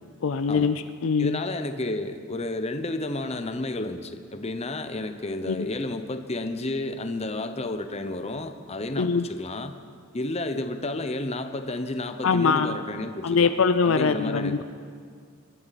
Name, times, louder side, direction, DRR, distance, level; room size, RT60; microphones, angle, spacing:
voice 1, 0.2-1.4 5.5-5.7 9.0-9.3 12.2-12.8 13.2-14.6, left 5 dB, 65° left, 10 dB, 0.5 m, -23 dB
voice 2, 1.2-9.8 10.1-13.5 13.8-14.6, left 2 dB, 30° left, 8 dB, 0.8 m, -31 dB
27.0 x 12.0 x 4.2 m, 2.1 s
head